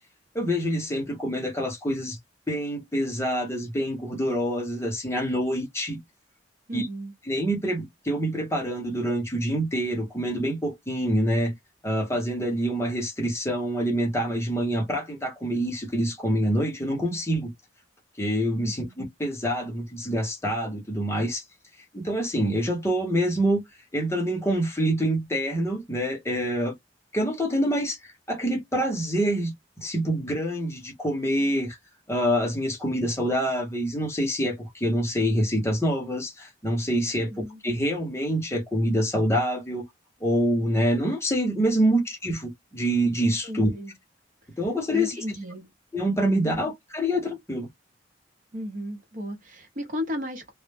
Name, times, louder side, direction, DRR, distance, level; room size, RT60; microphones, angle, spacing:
voice 1, 0.3-2.2 2.5-6.0 6.7-6.9 7.3-11.5 11.8-17.5 18.2-21.4 21.9-23.6 23.9-26.7 27.1-28.0 28.3-29.5 29.8-31.8 32.1-37.3 37.6-39.8 40.2-43.7 44.6-45.1 45.9-47.7, equal, 15° left, 0.7 m, -26 dB
voice 2, 6.7-7.1 18.6-19.0 37.2-37.6 43.4-43.9 44.9-45.7 46.4-46.6 48.5-50.5, equal, 45° right, 0.8 m, -34 dB
2.1 x 2.0 x 3.2 m
head